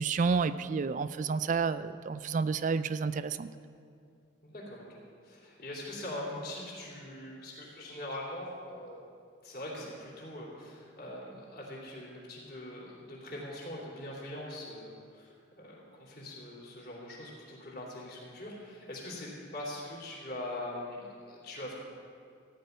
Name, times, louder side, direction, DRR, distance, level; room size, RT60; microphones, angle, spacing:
voice 1, 0.0-3.5, right 5 dB, 40° right, 14 dB, 0.3 m, -30 dB
voice 2, 4.4-9.1 9.4-21.7, left 1 dB, 45° left, -4 dB, 3.2 m, -42 dB
15.0 x 5.2 x 9.2 m, 2.4 s
head